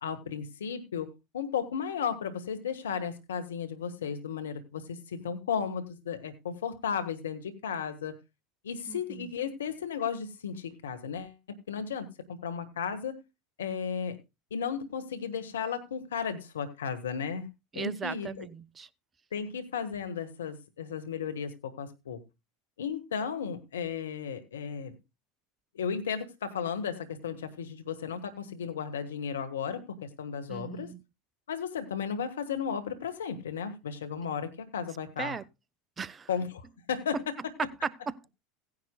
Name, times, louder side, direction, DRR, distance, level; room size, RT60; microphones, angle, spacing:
voice 1, 0.0-8.2 8.6-11.4 11.7-13.2 13.6-14.2 14.5-17.5 17.7-18.5 19.3-22.2 22.8-24.9 25.7-30.9 31.5-35.4 36.3-37.2, left 7 dB, 90° left, 1.5 m, -34 dB
voice 2, 8.9-9.3 17.7-18.9 30.5-31.0 35.2-35.4 36.0-36.3 37.8-38.3, right 6 dB, 25° right, 0.8 m, -37 dB
16.5 x 10.5 x 2.3 m
hypercardioid pair, 90°, 0 cm